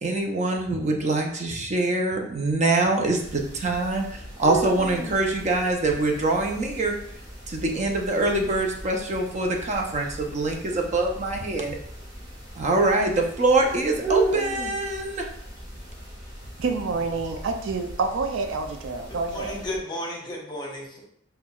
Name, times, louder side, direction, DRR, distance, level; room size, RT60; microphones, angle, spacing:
voice 1, 0.0-6.9 7.5-11.8 12.5-15.3, right 2 dB, 40° right, 2 dB, 0.5 m, -24 dB
sound 1, 3.2-19.8, right 2 dB, 20° right, 1.0 m, -36 dB
voice 2, 16.6-19.6, right 4 dB, 90° right, 5 dB, 0.4 m, -28 dB
voice 3, 19.3-21.0, left 1 dB, 25° left, -2 dB, 0.8 m, -33 dB
5.8 x 2.2 x 2.3 m, 0.69 s
head